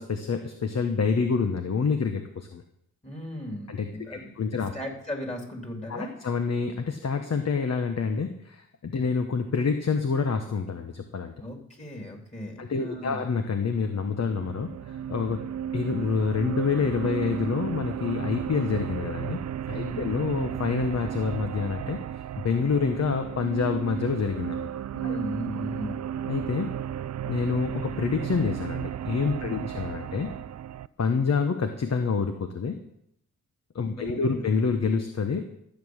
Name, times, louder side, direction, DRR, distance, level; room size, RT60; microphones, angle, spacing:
voice 1, 0.0-2.6 3.7-4.7 5.9-11.3 12.6-15.5 15.7-22.0 22.4-24.7 25.0-25.2 26.3-26.7 27.3-30.3 31.0-32.8 33.7-35.6, left 5 dB, 55° left, 6 dB, 1.2 m, -27 dB
voice 2, 3.0-6.1 11.4-13.2 19.7-20.1 24.9-26.0 29.4-29.7 33.9-34.4, equal, 20° left, 1 dB, 3.7 m, -37 dB
sound 1, 13.9-30.9, right 9 dB, 55° right, 0.5 m, -34 dB
14.0 x 7.8 x 6.5 m, 0.75 s
cardioid pair, 65°, 32 cm